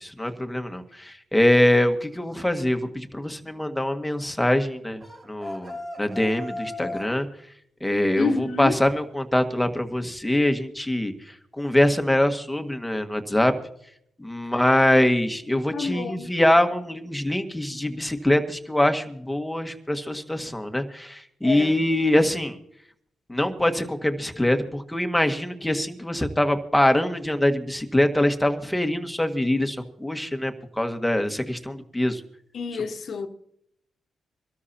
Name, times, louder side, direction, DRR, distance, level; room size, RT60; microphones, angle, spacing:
voice 1, 0.0-7.3 7.8-13.5 14.2-22.6 23.3-32.2, left 1 dB, 10° left, 1.8 m, -23 dB
sound 1, 5.0-7.2, left 1 dB, 35° right, 5.3 m, -36 dB
voice 2, 8.1-8.8 15.7-16.3 21.4-21.8 32.5-33.3, left 4 dB, 65° left, 1.5 m, -28 dB
25.0 x 13.5 x 2.9 m
supercardioid pair, 55°, 0 cm